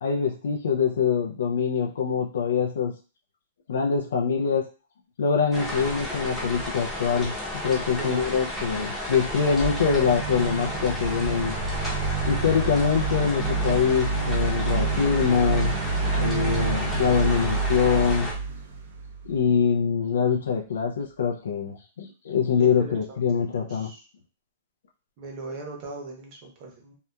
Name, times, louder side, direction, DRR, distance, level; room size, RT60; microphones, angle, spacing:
voice 1, 0.0-2.9 3.7-4.6 5.2-7.3 7.6-11.5 12.3-15.8 16.1-18.3 19.2-23.9, left 6 dB, 85° left, 1 dB, 0.3 m, -24 dB
sound 1, 5.5-18.3, left 1 dB, ahead, 0.7 m, -33 dB
voice 2, 8.0-8.3 22.6-23.4 23.7-24.0 25.2-26.9, right 3 dB, 40° right, 0 dB, 0.8 m, -39 dB
sound 2, 9.3-19.5, right 4 dB, 70° right, 0.6 m, -29 dB
2.7 x 2.2 x 2.2 m, 0.36 s
hypercardioid pair, 140°, 0 cm